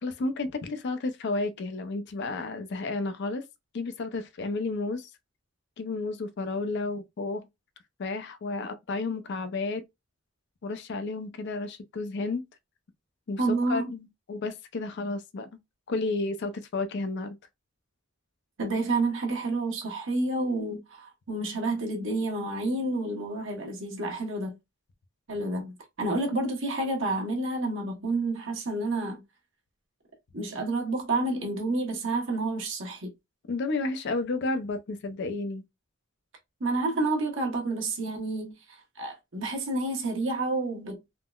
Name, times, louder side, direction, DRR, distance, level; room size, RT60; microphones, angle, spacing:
voice 1, 0.0-3.5 3.7-5.1 5.8-7.5 8.0-9.8 10.6-12.4 13.3-15.5 15.9-17.4 33.5-35.6, left 3 dB, 55° left, 0.4 m, -32 dB
voice 2, 13.4-13.9 18.6-24.6 25.3-29.2 30.3-33.1 36.6-41.0, right 2 dB, 65° right, 1.0 m, -29 dB
3.6 x 2.0 x 2.3 m
head